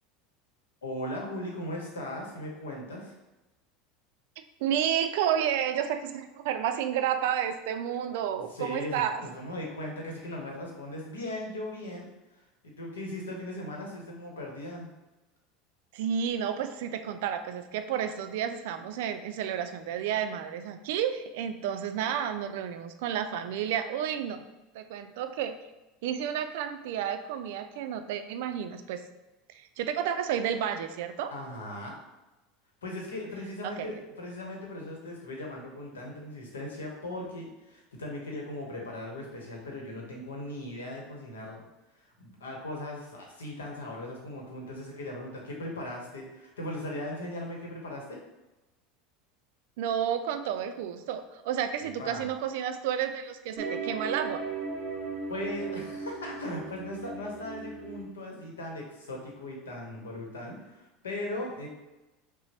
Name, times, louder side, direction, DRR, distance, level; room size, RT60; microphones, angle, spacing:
voice 1, 0.8-3.1 8.5-12.1 12.6-14.9 31.3-31.9 32.8-41.6 42.2-48.2 51.8-52.2 55.3-61.7, left 1 dB, 90° left, 0 dB, 0.9 m, -38 dB
voice 2, 4.4-9.2 15.9-24.4 24.7-25.6 26.0-29.0 29.5-31.3 33.6-34.0 49.8-54.4, right 9 dB, 70° right, 9 dB, 0.3 m, -31 dB
sound 1, 53.6-58.1, right 4 dB, 35° right, 0.7 m, -37 dB
5.7 x 2.0 x 2.8 m, 1.0 s
hypercardioid pair, 90°, 0 cm